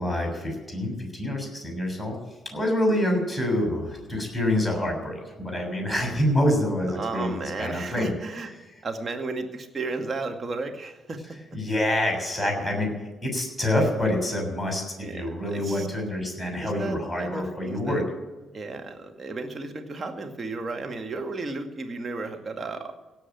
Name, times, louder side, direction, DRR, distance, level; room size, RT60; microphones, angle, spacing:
voice 1, 0.0-2.2 2.5-8.1 11.5-12.9 13.2-18.0, left 1 dB, 5° left, 2 dB, 6.9 m, -26 dB
voice 2, 6.9-8.5 8.8-11.2 15.0-15.3 15.5-15.9 16.6-18.0 18.5-22.9, right 3 dB, 35° right, 4 dB, 2.0 m, -33 dB
17.0 x 7.2 x 9.3 m, 1.2 s
figure-of-eight pair, 45°, 0 cm